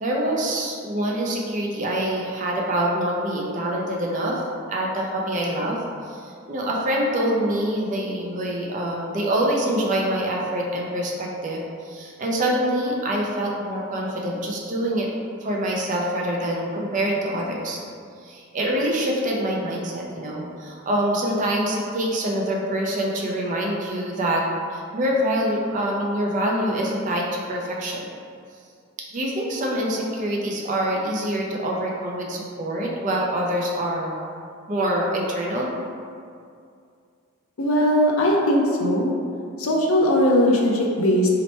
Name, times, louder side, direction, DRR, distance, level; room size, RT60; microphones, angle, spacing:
voice 1, 0.0-4.4 4.7-5.8 6.1-15.1 15.4-17.8 18.2-24.4 24.7-28.1 29.1-34.2 34.7-35.7, right 1 dB, 35° right, -2 dB, 0.4 m, -25 dB
voice 2, 37.6-39.1 39.6-41.3, equal, 80° left, -1 dB, 0.5 m, -19 dB
2.9 x 2.1 x 4.1 m, 2.3 s
head